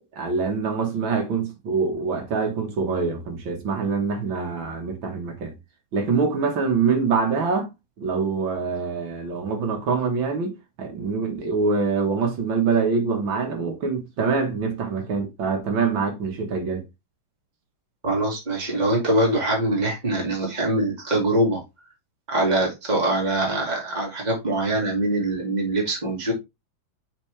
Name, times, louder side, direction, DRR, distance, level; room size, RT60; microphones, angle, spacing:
voice 1, 0.1-5.5 5.9-16.8, right 5 dB, 85° right, 2.4 m, -25 dB
voice 2, 18.0-21.6 22.3-26.3, right 1 dB, 20° right, 2.5 m, -23 dB
7.2 x 4.5 x 3.3 m
omnidirectional pair, 2.1 m